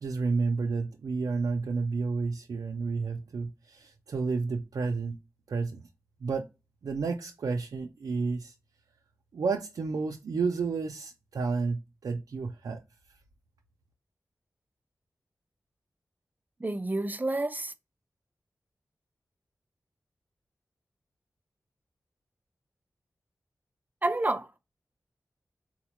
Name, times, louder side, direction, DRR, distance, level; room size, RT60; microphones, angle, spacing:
voice 1, 0.0-5.2 5.5-5.8 6.2-6.5 6.8-8.5 9.3-12.8, right 4 dB, 85° right, 0.4 m, -31 dB
voice 2, 16.6-17.7 24.0-24.5, right 2 dB, 30° right, 0.6 m, -29 dB
3.8 x 2.1 x 2.9 m
cardioid pair, 55°, 6 cm